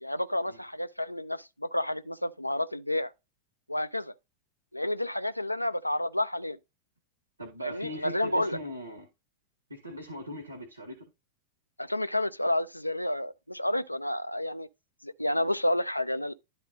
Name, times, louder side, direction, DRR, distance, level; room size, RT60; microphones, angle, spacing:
voice 1, 0.0-3.1 3.7-4.1 4.7-6.6 7.6-8.6 11.8-14.7 15.0-16.3, left 1 dB, 85° left, 0.4 m, -30 dB
voice 2, 7.4-9.1 9.7-11.0, equal, 85° right, 1.5 m, -40 dB
10.5 x 4.0 x 3.7 m
figure-of-eight pair, 90°, 0 cm